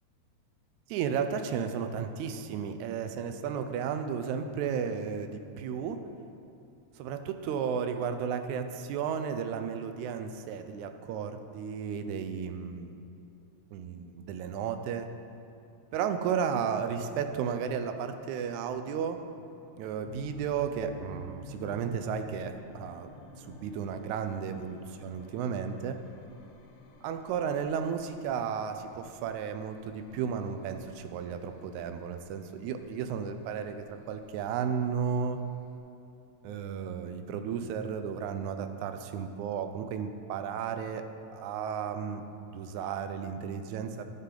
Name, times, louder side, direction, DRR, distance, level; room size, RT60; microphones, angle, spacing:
voice 1, 0.9-6.0 7.0-13.0 13.7-15.1 15.9-19.2 19.8-23.1 23.4-26.0 27.0-35.4 36.4-41.1 41.3-44.0, right 7 dB, 85° right, 8 dB, 1.9 m, -33 dB
sound 1, 20.0-35.8, left 2 dB, 75° left, 1.5 m, -52 dB
11.5 x 5.7 x 3.8 m, 2.9 s
omnidirectional pair, 3.4 m